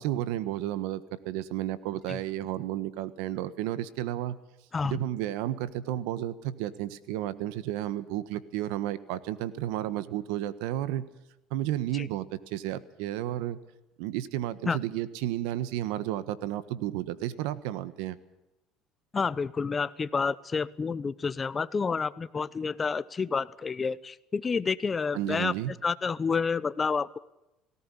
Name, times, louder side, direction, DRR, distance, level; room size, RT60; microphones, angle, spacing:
voice 1, 0.0-4.4 4.9-11.1 11.5-13.6 14.0-18.2 25.1-25.7, right 13 dB, 80° right, 15 dB, 1.4 m, -32 dB
voice 2, 4.7-5.0 11.9-12.1 14.7-14.8 19.1-25.5 25.8-27.2, left 5 dB, 25° left, 17 dB, 0.9 m, -29 dB
18.5 x 17.5 x 10.0 m, 0.90 s
supercardioid pair, 105°, 0 cm